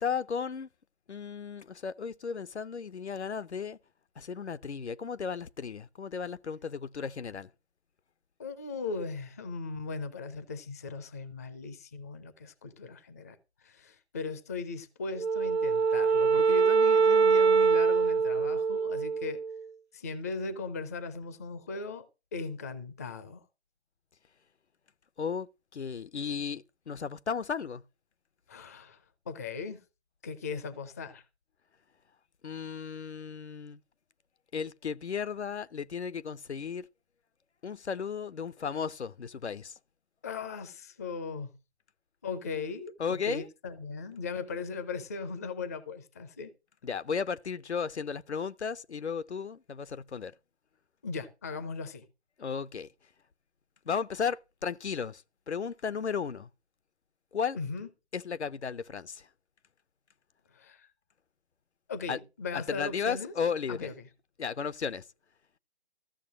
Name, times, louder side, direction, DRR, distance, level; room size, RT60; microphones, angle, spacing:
voice 1, 0.0-0.7 1.1-3.8 4.2-7.5 25.2-27.8 32.4-33.8 34.5-36.9 37.6-39.8 43.0-43.5 46.8-50.3 52.4-52.9 53.9-56.5 57.3-57.6 58.1-59.3 62.1-62.2 62.5-63.9 64.4-65.0, left 6 dB, 80° left, 0.7 m, -34 dB
voice 2, 8.4-13.4 13.6-19.4 19.9-22.1 22.3-23.4 28.5-29.0 29.3-29.8 30.2-31.2 40.2-41.5 42.2-46.5 51.0-52.1 57.5-57.9 60.5-60.9 61.9-63.3 63.7-64.1, left 4 dB, 15° left, 0.5 m, -38 dB
Wind instrument woodwind instrument, 15.2-19.6, right 5 dB, 75° right, 0.8 m, -24 dB
14.0 x 6.7 x 6.1 m
figure-of-eight pair, 145°, 33 cm